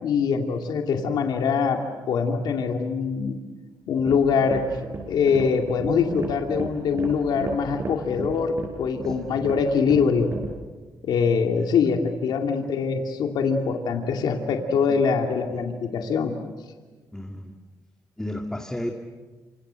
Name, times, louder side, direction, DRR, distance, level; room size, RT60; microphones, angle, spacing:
voice 1, 0.0-1.8 2.1-3.4 3.9-4.6 5.1-10.3 11.0-16.4, left 6 dB, 80° left, 3 dB, 2.5 m, -23 dB
sound 1, 3.9-10.6, right 3 dB, 40° right, 6.3 m, -34 dB
voice 2, 17.1-17.5 18.2-18.9, left 1 dB, 10° left, 2 dB, 2.2 m, -34 dB
28.0 x 26.5 x 7.8 m, 1.3 s
cardioid pair, 100°, 7 cm